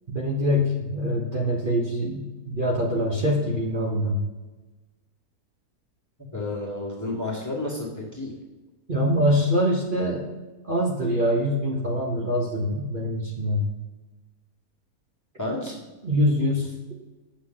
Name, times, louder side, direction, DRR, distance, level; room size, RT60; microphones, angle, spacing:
voice 1, 0.1-4.3 8.9-10.3 10.6-13.7 16.0-16.7, equal, 35° right, -3 dB, 1.2 m, -24 dB
voice 2, 6.3-8.3 15.4-15.8, left 2 dB, 10° left, -3 dB, 1.6 m, -31 dB
8.0 x 6.3 x 3.9 m, 1.2 s
omnidirectional pair, 1.6 m